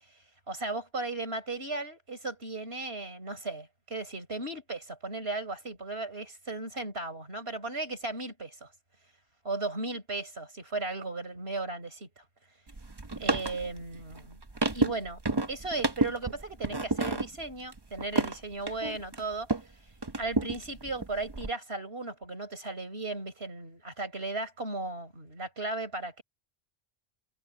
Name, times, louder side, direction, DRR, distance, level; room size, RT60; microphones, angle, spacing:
voice 1, 0.5-8.7 9.4-12.2 13.2-14.4 14.7-15.2 15.5-19.6 20.2-26.2, right 3 dB, 80° right, 5.4 m, -36 dB
sound 1, 12.7-19.7 20.0-21.5, right 2 dB, 25° right, 1.0 m, -31 dB
omnidirectional pair, 1.0 m